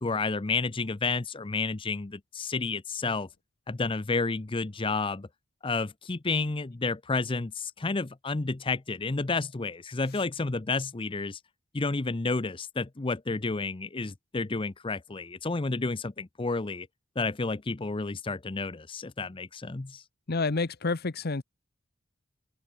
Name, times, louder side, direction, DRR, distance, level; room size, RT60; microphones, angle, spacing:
voice 1, 0.0-3.3 3.7-5.3 5.6-11.4 11.7-16.9 17.2-20.0, left 3 dB, 25° left, 0.6 m, -31 dB
voice 2, 20.3-21.4, left 3 dB, 50° left, 0.9 m, -28 dB
head